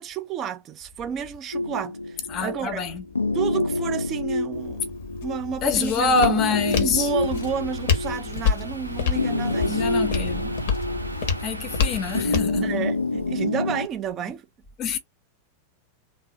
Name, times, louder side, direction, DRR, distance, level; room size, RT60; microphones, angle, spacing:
voice 1, 0.0-2.9 3.3-4.9 5.2-6.3 6.8-9.8 12.6-14.5, right 8 dB, 30° right, 0.5 m, -31 dB
sound 1, 1.5-13.9, left 2 dB, 80° left, 0.3 m, -28 dB
voice 2, 2.3-3.0 5.6-7.1 9.7-10.5 11.4-12.8 14.8-15.0, left 4 dB, 35° left, 0.7 m, -25 dB
Walk footsteps, 4.5-12.6, left 6 dB, 60° left, 0.9 m, -29 dB
sound 2, 7.0-12.2, right 1 dB, 85° right, 0.4 m, -36 dB
3.3 x 2.0 x 2.7 m
figure-of-eight pair, 90°, 0 cm